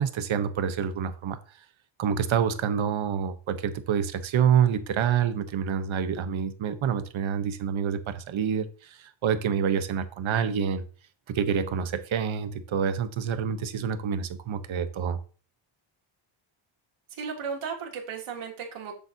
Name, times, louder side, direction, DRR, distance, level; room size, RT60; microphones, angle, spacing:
voice 1, 0.0-1.4 2.0-10.8 11.3-15.2, right 8 dB, 70° right, 1.2 m, -27 dB
voice 2, 17.1-19.0, right 6 dB, 85° right, 3.2 m, -35 dB
10.0 x 7.4 x 2.9 m
cardioid pair, 130°, 50 cm